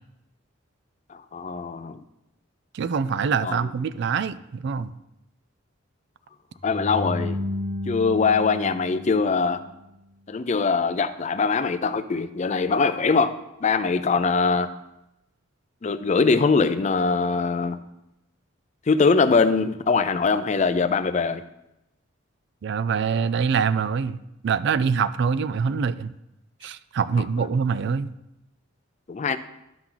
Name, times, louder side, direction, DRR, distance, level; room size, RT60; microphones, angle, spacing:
voice 1, 1.1-2.0 3.4-3.7 6.6-7.4 7.9-9.6 10.3-13.3 13.6-14.7 15.8-17.8 18.9-21.4 27.4-27.5 29.1-29.4, left 4 dB, 35° left, 11 dB, 0.4 m, -22 dB
voice 2, 2.7-4.9 22.6-26.1 26.6-28.1, right 6 dB, 60° right, 14 dB, 0.4 m, -24 dB
sound 1, 6.6-9.8, left 1 dB, 85° right, 2.3 m, -32 dB
11.5 x 5.9 x 3.9 m, 0.88 s
head